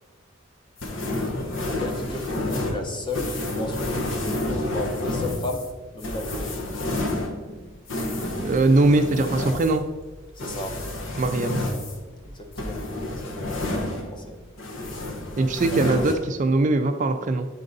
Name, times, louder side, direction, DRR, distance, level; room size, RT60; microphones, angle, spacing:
sound 1, 0.8-14.3 14.6-16.1, left 1 dB, 70° left, 1.0 m, -30 dB
voice 1, 1.8-5.7 5.9-6.5 10.4-10.8 12.2-12.8 13.3-14.4, left 2 dB, 25° left, 3 dB, 0.8 m, -34 dB
voice 2, 8.4-9.8 11.2-11.6 15.4-17.5, right 2 dB, 40° right, 7 dB, 0.3 m, -21 dB
8.4 x 3.8 x 3.9 m, 1.2 s
head